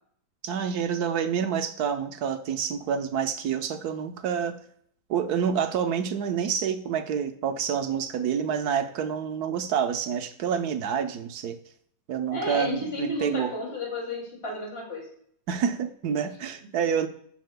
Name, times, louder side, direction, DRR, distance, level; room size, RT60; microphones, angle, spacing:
voice 1, 0.4-4.6 5.1-11.6 12.1-13.5 15.5-17.1, right 7 dB, 65° right, 8 dB, 1.2 m, -28 dB
voice 2, 12.3-15.1, left 1 dB, 35° left, -2 dB, 2.9 m, -32 dB
17.0 x 5.7 x 2.2 m, 0.63 s
omnidirectional pair, 1.9 m